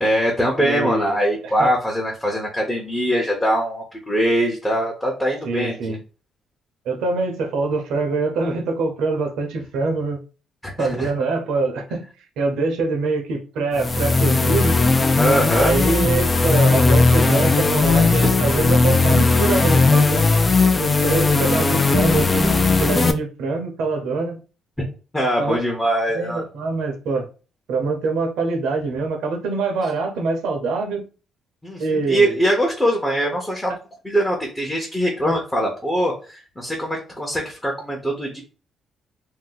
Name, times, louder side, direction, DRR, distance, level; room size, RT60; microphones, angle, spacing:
voice 1, 0.0-6.0 10.8-11.1 15.2-15.7 18.2-18.3 24.8-24.9 25.1-26.4 31.6-33.7 34.0-38.4, equal, 10° left, 0.8 m, -22 dB
voice 2, 0.6-1.7 5.4-6.0 6.8-10.2 10.8-12.1 12.4-14.8 15.5-20.3 20.8-22.5 22.8-24.4 25.4-25.6 26.1-27.3 27.7-31.0 31.8-32.4 35.2-35.4, right 3 dB, 85° right, 0.8 m, -24 dB
sound 1, 13.7-23.1, left 3 dB, 30° left, 0.4 m, -17 dB
2.7 x 2.2 x 3.9 m
cardioid pair, 90°, 0 cm